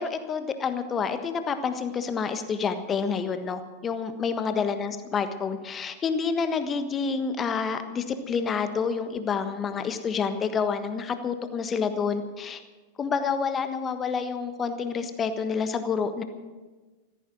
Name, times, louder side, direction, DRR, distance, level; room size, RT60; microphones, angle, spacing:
voice 1, 0.0-12.6 13.0-16.2, left 5 dB, 25° left, 9 dB, 1.4 m, -28 dB
15.0 x 14.0 x 6.1 m, 1.3 s
figure-of-eight pair, 90°, 0 cm